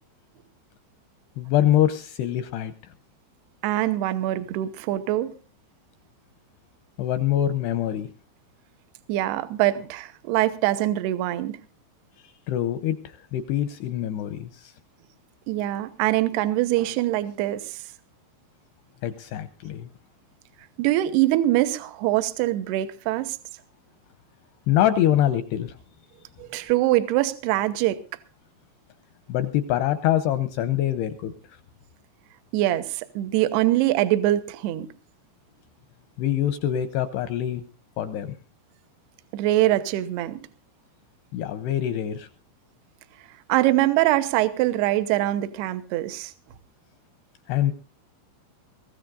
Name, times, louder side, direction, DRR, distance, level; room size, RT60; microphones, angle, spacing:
voice 1, 1.4-2.7 7.0-8.1 12.2-14.7 19.0-19.9 24.7-25.7 29.3-31.3 36.2-37.6 38.0-38.4 41.3-42.3 47.5-47.7, left 11 dB, 80° left, 10 dB, 2.5 m, -24 dB
voice 2, 3.6-5.3 9.1-11.6 15.5-17.8 20.8-23.4 26.4-28.0 32.5-34.9 39.3-40.5 43.5-46.3, right 15 dB, 75° right, 11 dB, 2.7 m, -23 dB
23.0 x 15.5 x 2.6 m, 0.37 s
omnidirectional pair, 5.5 m